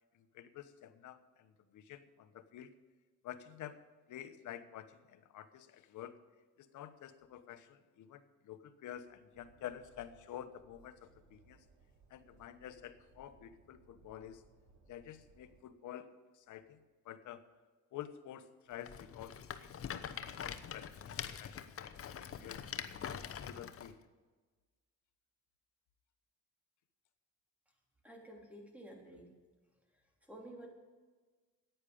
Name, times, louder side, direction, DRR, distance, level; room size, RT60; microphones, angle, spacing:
voice 1, 0.1-2.7 3.2-3.8 4.1-6.2 6.6-11.6 12.1-14.4 14.9-17.4 17.9-19.9 20.2-22.9 23.5-24.0, left 11 dB, 80° left, 11 dB, 1.1 m, -50 dB
Train, 9.3-15.6, right 4 dB, 70° right, 3.2 m, -66 dB
Rattle, 18.8-23.9, left 8 dB, 50° left, 0.9 m, -44 dB
voice 2, 28.0-29.3 29.9-30.7, right 1 dB, 5° right, 0 dB, 3.6 m, -52 dB
10.5 x 9.2 x 8.6 m, 1.3 s
cardioid pair, 90°, 30 cm